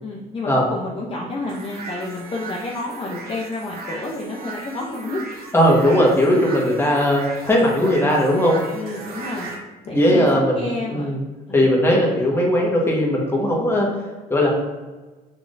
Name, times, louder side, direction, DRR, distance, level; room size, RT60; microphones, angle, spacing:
voice 1, 0.0-5.2 8.7-9.6 9.8-11.1 11.5-11.7, left 2 dB, 30° left, -3 dB, 0.7 m, -30 dB
sound 1, 1.5-9.6, right 3 dB, 65° right, 1.0 m, -37 dB
voice 2, 5.5-8.6 9.9-10.6 10.9-11.2 11.5-13.9 14.3-14.5, equal, 15° left, -2 dB, 1.3 m, -18 dB
6.0 x 3.3 x 2.6 m, 1.3 s
cardioid pair, 110°, 17 cm